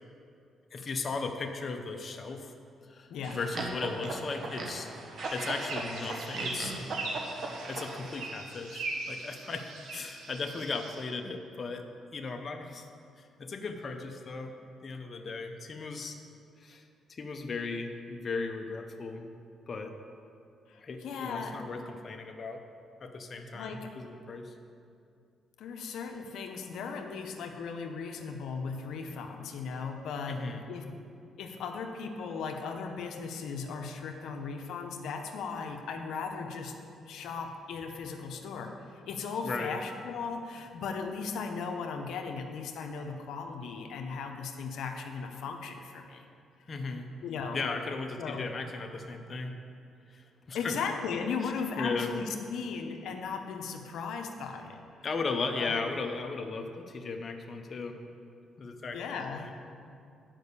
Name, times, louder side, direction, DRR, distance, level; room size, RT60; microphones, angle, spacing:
voice 1, 0.7-2.5 2.9-4.9 5.3-6.7 7.7-11.9 12.1-12.8 13.2-14.5 14.8-16.2 16.6-16.8 17.1-19.4 19.7-19.9 20.8-22.6 23.0-24.5 30.3-30.6 39.4-39.7 46.7-47.1 47.5-49.6 50.1-50.7 51.4-52.1 55.0-58.0 58.6-59.5, left 4 dB, 40° left, 4 dB, 0.7 m, -36 dB
voice 2, 3.1-3.4 20.7-21.6 23.5-23.9 25.6-30.4 30.7-30.8 31.4-36.8 37.1-46.3 47.2-47.6 48.2-48.5 50.5-54.8 55.6-55.8 58.9-59.5, left 5 dB, 80° left, 4 dB, 0.8 m, -37 dB
sound 1, 3.2-8.3, right 2 dB, 60° right, 1.3 m, -38 dB
sound 2, 5.2-11.0, right 3 dB, 80° right, 1.4 m, -40 dB
9.0 x 5.3 x 6.8 m, 2.5 s
cardioid pair, 90°, 0 cm